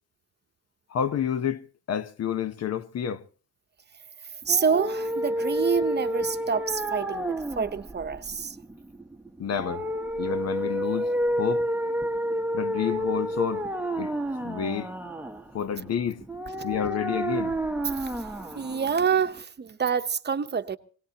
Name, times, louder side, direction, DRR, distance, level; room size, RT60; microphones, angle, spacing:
voice 1, 0.9-3.3 9.4-9.9 10.2-11.1 11.4-11.7 12.5-13.7 14.0-14.1 14.4-14.9 15.5-16.2 16.6-17.5, left 8 dB, 55° left, 0.9 m, -29 dB
sound 1, 4.4-19.4, equal, 5° right, 0.9 m, -30 dB
voice 2, 4.5-8.6 18.0-20.8, right 6 dB, 35° right, 0.9 m, -27 dB
24.5 x 18.0 x 2.9 m
cardioid pair, 90°, 30 cm